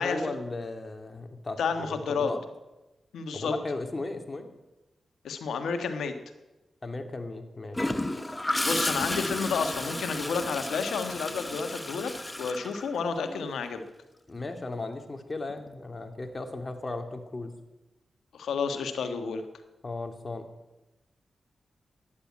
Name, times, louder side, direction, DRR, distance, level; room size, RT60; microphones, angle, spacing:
voice 1, 0.0-2.4 3.3-4.5 6.8-7.8 14.3-17.5 19.8-20.5, left 2 dB, 35° left, 6 dB, 2.4 m, -36 dB
voice 2, 1.6-2.3 3.1-3.5 5.2-6.1 8.6-12.1 12.4-13.8 18.3-19.4, left 5 dB, 85° left, 8 dB, 1.4 m, -30 dB
Gurgling / Toilet flush, 7.7-13.5 15.5-15.7, left 1 dB, 20° left, 1.1 m, -32 dB
13.0 x 10.0 x 8.4 m, 1.0 s
supercardioid pair, 45°, 0 cm